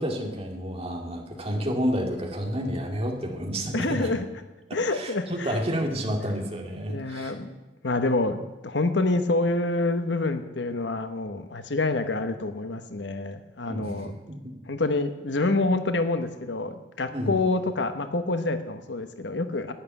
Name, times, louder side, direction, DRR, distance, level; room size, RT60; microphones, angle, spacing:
voice 1, 0.0-4.1 4.7-7.3 13.7-14.1 14.4-14.6 15.4-15.6 17.1-17.4, equal, 35° right, 2 dB, 2.3 m, -30 dB
voice 2, 3.7-4.3 4.7-5.6 6.9-7.5 7.8-8.4 8.6-14.1 14.7-19.7, left 2 dB, 75° left, 9 dB, 1.1 m, -27 dB
11.5 x 9.4 x 9.9 m, 1.1 s
head